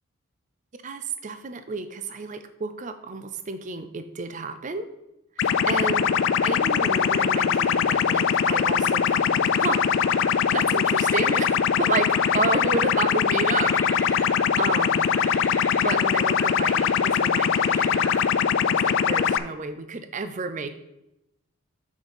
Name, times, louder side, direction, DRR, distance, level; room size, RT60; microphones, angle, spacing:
voice 1, 0.8-4.9 5.4-6.1 6.4-9.9 10.5-15.1 15.8-18.1 18.7-20.8, right 4 dB, 35° right, 10 dB, 0.5 m, -31 dB
sound 1, 5.4-19.4, left 7 dB, 60° left, 0.4 m, -22 dB
sound 2, 9.5-18.3, left 2 dB, 10° left, 0.8 m, -39 dB
6.4 x 5.3 x 5.6 m, 0.88 s
head